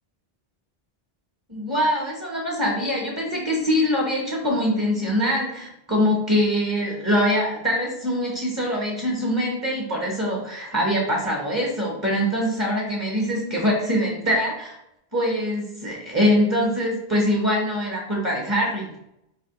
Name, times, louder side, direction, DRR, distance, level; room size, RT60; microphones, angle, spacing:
voice 1, 1.5-14.8 15.1-18.9, equal, 15° right, -3 dB, 0.7 m, -23 dB
4.9 x 2.8 x 2.9 m, 0.81 s
omnidirectional pair, 1.0 m